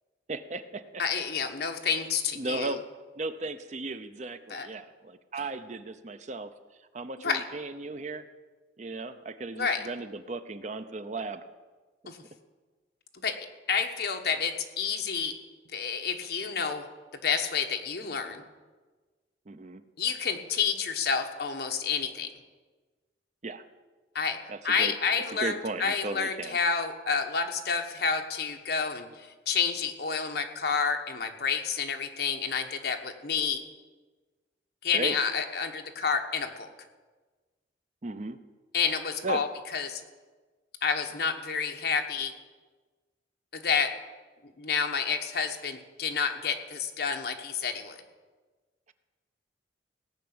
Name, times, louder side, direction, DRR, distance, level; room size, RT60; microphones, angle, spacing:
voice 1, 0.3-1.0 2.3-2.8 3.2-6.5 6.9-8.3 8.8-11.5 19.5-19.8 23.4-23.6 24.5-24.9 25.4-26.6 34.9-35.2 38.0-38.4 39.2-39.4, right 3 dB, 40° right, 10 dB, 0.6 m, -36 dB
voice 2, 1.0-2.8 4.5-4.7 7.2-7.4 9.6-9.8 12.1-12.2 13.2-13.4 13.7-15.4 15.7-16.9 17.2-18.4 20.0-22.3 24.1-24.4 24.6-33.6 34.8-36.7 38.7-39.5 39.7-40.0 40.8-42.3 43.5-43.9 44.6-48.0, left 6 dB, 60° left, 5 dB, 1.2 m, -29 dB
17.0 x 5.8 x 8.8 m, 1.3 s
head